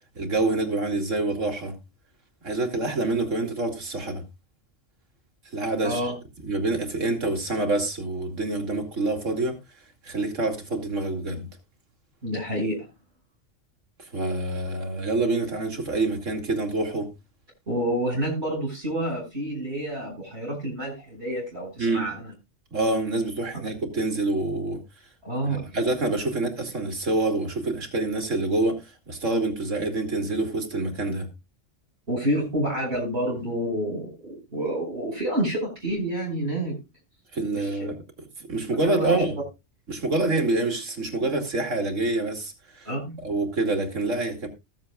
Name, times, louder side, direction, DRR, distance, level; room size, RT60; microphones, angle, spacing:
voice 1, 0.1-1.8 2.4-4.2 5.5-6.1 6.4-9.6 10.0-11.5 14.0-17.1 21.8-22.1 22.7-24.8 25.4-31.3 37.3-38.0 38.4-39.4 39.9-42.9 43.2-44.5, right 2 dB, 85° right, 2.8 m, -26 dB
voice 2, 12.2-12.9 17.7-22.3 25.2-25.8 32.1-36.7 37.5-37.9 38.7-39.1 42.8-43.1, right 1 dB, 60° right, 5.6 m, -28 dB
20.0 x 7.5 x 2.4 m
omnidirectional pair, 1.3 m